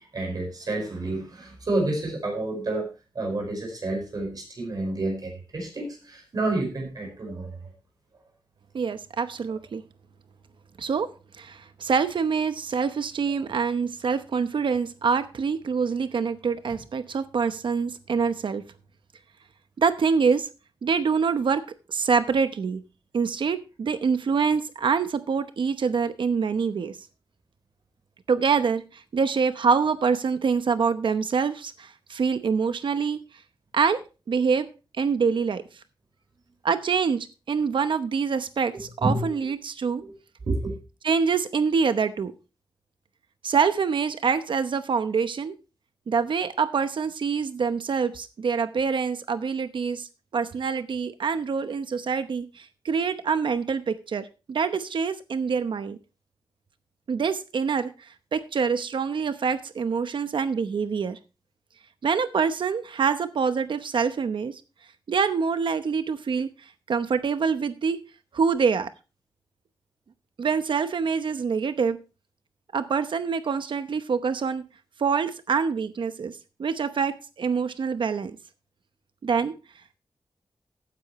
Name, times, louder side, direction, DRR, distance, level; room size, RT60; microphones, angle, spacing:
voice 1, 0.1-2.9 3.1-7.5 38.7-39.3 40.0-40.1 40.5-40.8, right 2 dB, 50° right, 2 dB, 5.0 m, -29 dB
voice 2, 8.7-9.8 10.8-18.6 19.8-20.5 20.8-22.8 23.1-27.0 28.3-33.2 33.7-34.7 35.0-35.6 36.6-40.0 41.0-42.3 43.4-45.5 46.1-56.0 57.1-61.2 62.0-64.6 65.1-66.5 66.9-68.0 68.3-68.9 70.4-72.0 72.7-74.6 75.0-78.3 79.2-79.5, right 5 dB, 75° right, 11 dB, 0.8 m, -25 dB
15.0 x 10.0 x 3.1 m, 0.31 s
wide cardioid pair, 170°, 8 cm